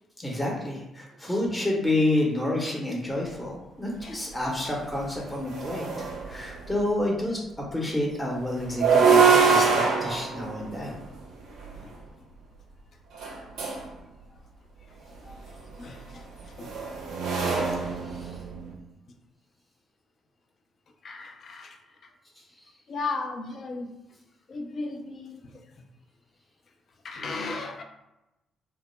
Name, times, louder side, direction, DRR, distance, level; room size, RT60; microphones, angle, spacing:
voice 1, 0.2-7.4 7.7-11.0 18.1-18.3, left 1 dB, 15° left, -2 dB, 0.7 m, -29 dB
Screechy metal bin, 4.3-4.4 4.8-6.7 8.6-11.8 13.1-13.9 15.3-18.7, right 5 dB, 65° right, 0.4 m, -24 dB
voice 2, 15.8-16.2 16.6-16.7 21.0-21.8 22.9-23.9 24.5-25.4 27.0-27.8, left 3 dB, 50° left, 4 dB, 0.3 m, -35 dB
2.1 x 2.0 x 3.1 m, 0.93 s
figure-of-eight pair, 40°, 0 cm